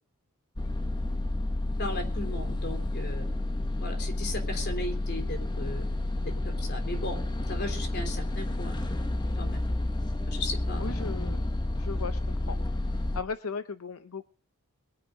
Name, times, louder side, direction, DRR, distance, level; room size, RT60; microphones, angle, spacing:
sound 1, 0.6-13.2, left 1 dB, 20° left, 1.0 m, -30 dB
voice 1, 1.8-3.2 3.8-5.8 6.4-7.2 7.5-8.9 9.4-9.6 10.3-10.8, left 2 dB, 50° left, 5 dB, 3.5 m, -36 dB
voice 2, 10.8-12.6 13.1-14.3, left 5 dB, 75° left, 11 dB, 0.7 m, -37 dB
22.0 x 10.0 x 3.9 m, 0.38 s
head